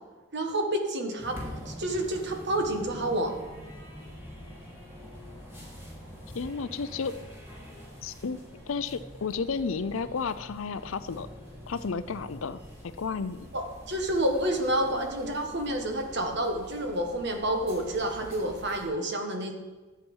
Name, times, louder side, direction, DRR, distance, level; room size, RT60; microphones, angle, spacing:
voice 1, 0.3-1.4 1.6-3.4 13.5-19.5, right 1 dB, 55° right, 4 dB, 1.7 m, -29 dB
sound 1, 1.2-18.9, equal, 10° right, 3.1 m, -45 dB
voice 2, 6.3-7.1 8.0-11.3 11.7-12.6 13.0-13.5, left 5 dB, 70° left, 14 dB, 0.5 m, -32 dB
13.0 x 8.5 x 5.5 m, 1.3 s
head